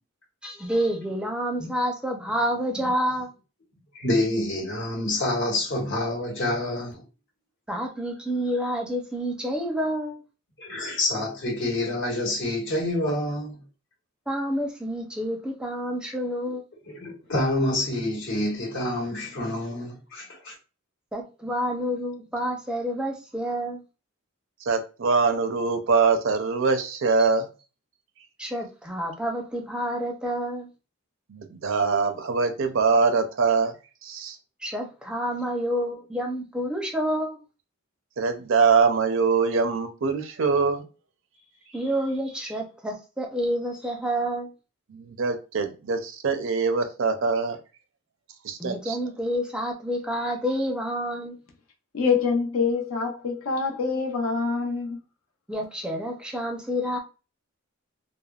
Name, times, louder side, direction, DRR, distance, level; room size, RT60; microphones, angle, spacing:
voice 1, 0.4-3.3 7.7-10.2 14.3-16.6 21.1-23.8 27.2-27.3 28.4-30.7 34.6-37.4 41.7-44.5 48.6-51.4 55.5-57.0, equal, 5° right, 0.5 m, -28 dB
voice 2, 3.9-7.0 10.6-13.6 16.9-20.5, left 1 dB, 60° left, 1.1 m, -27 dB
voice 3, 24.6-27.5 31.3-33.7 34.0-34.4 38.2-40.8 44.9-47.6 48.4-49.0, right 4 dB, 65° right, 0.5 m, -23 dB
voice 4, 51.9-55.0, left 5 dB, 75° left, 0.7 m, -25 dB
3.3 x 2.0 x 2.3 m
head